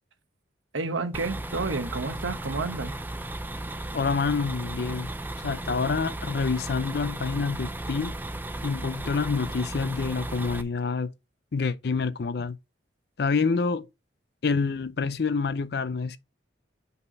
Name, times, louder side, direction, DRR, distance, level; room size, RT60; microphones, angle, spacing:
voice 1, 0.7-2.9, right 3 dB, 90° right, 0.9 m, -30 dB
sound 1, 1.1-10.6, right 1 dB, 10° right, 0.4 m, -35 dB
voice 2, 3.9-5.1 5.4-8.2 8.6-11.1 11.5-12.6 13.2-13.9 14.4-16.2, left 4 dB, 55° left, 0.5 m, -27 dB
5.4 x 4.2 x 5.6 m
head